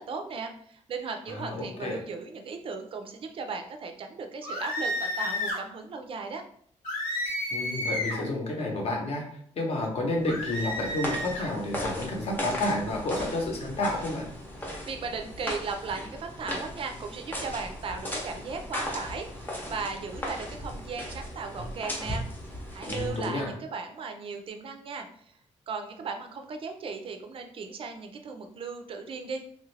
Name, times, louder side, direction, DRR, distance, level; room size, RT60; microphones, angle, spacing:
voice 1, 0.0-6.4 14.6-22.2 22.7-25.1 25.7-29.4, right 4 dB, 45° right, 5 dB, 0.4 m, -37 dB
voice 2, 1.3-2.0 7.5-9.2 9.6-14.3 22.9-23.5, left 2 dB, 50° left, 0 dB, 0.8 m, -30 dB
sound 1, 4.4-5.6 6.8-8.3 10.2-11.5, left 1 dB, 90° left, 1.2 m, -31 dB
sound 2, 10.2-23.5, left 1 dB, 15° left, 0.6 m, -37 dB
3.1 x 2.4 x 3.2 m, 0.62 s
wide cardioid pair, 155°, 13 cm